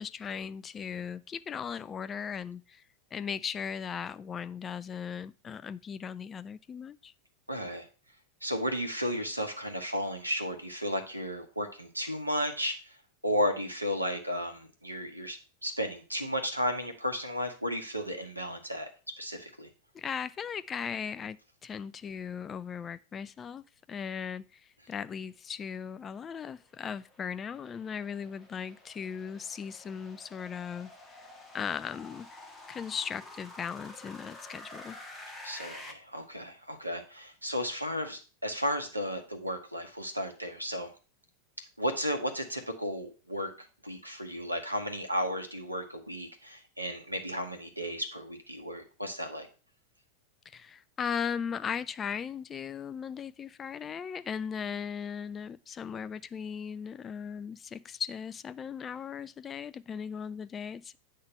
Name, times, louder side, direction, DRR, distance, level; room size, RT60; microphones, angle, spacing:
voice 1, 0.0-2.8 3.1-7.1 19.9-23.6 23.9-24.6 24.9-31.2 31.5-35.0 50.5-61.0, left 7 dB, 20° left, 0.3 m, -38 dB
voice 2, 7.5-7.9 8.4-13.0 13.2-18.9 19.2-19.7 35.4-40.9 41.8-49.5, equal, 85° right, 1.2 m, -34 dB
sound 1, 26.4-35.9, left 1 dB, 5° left, 1.5 m, -49 dB
8.6 x 3.7 x 5.7 m
figure-of-eight pair, 90°, 0 cm